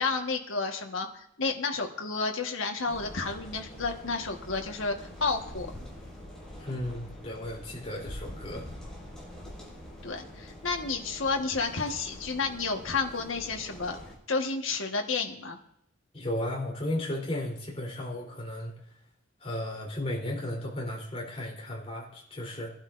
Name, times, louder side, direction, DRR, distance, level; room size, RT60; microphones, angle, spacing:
voice 1, 0.0-5.7 10.0-14.0 14.3-15.6, left 4 dB, 85° left, 3 dB, 1.4 m, -31 dB
sound 1, 2.8-14.1, left 1 dB, 5° left, 5.5 m, -45 dB
voice 2, 6.6-8.7 16.1-18.7 19.4-22.7, left 1 dB, 30° left, -2 dB, 3.5 m, -34 dB
21.5 x 11.5 x 2.6 m, 0.73 s
head